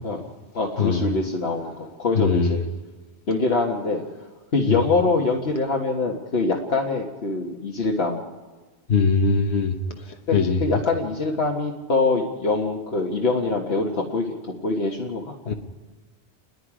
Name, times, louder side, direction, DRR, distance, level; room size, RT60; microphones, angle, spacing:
voice 1, 0.5-2.6 3.3-4.0 4.5-8.2 10.3-15.5, left 3 dB, 70° left, -1 dB, 1.6 m, -24 dB
voice 2, 2.1-2.5 4.7-4.8 8.9-9.8 10.3-10.6 15.5-15.6, left 5 dB, 85° left, 4 dB, 1.5 m, -20 dB
29.0 x 21.0 x 5.0 m, 1.3 s
omnidirectional pair, 1.1 m